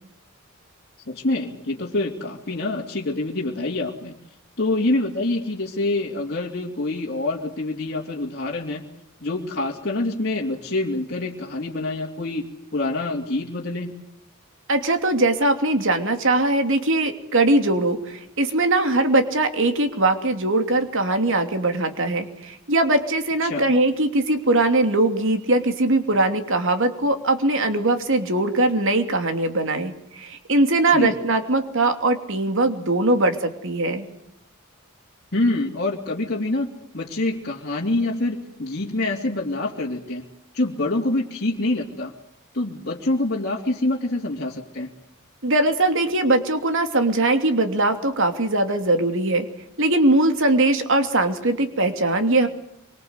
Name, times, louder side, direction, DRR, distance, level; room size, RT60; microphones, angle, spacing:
voice 1, 1.1-4.1 4.6-8.9 9.2-13.9 23.4-23.6 30.9-31.1 35.3-40.3 40.5-42.1 42.5-44.9, left 2 dB, 50° left, -4 dB, 2.8 m, -26 dB
voice 2, 14.7-34.1 45.4-49.5 49.8-52.5, right 2 dB, 60° right, 7 dB, 2.9 m, -21 dB
26.5 x 24.5 x 8.1 m, 0.79 s
head